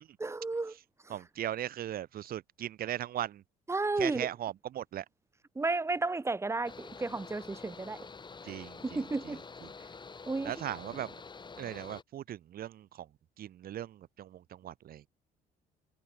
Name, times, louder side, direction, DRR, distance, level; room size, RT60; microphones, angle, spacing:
voice 1, 0.2-0.8 1.1-1.2 3.7-4.3 5.6-8.1 8.4-8.6 8.8-9.4 10.3-10.6, right 3 dB, 15° right, 2.2 m, -33 dB
voice 2, 1.1-3.4 4.0-5.1 8.4-9.3 9.6-9.7 10.4-11.1 11.6-13.1 13.4-15.1, right 11 dB, 60° right, 3.6 m, -38 dB
Mechanical fan, 6.6-12.0, left 4 dB, 25° left, 7.0 m, -48 dB
cardioid pair, 110°, 17 cm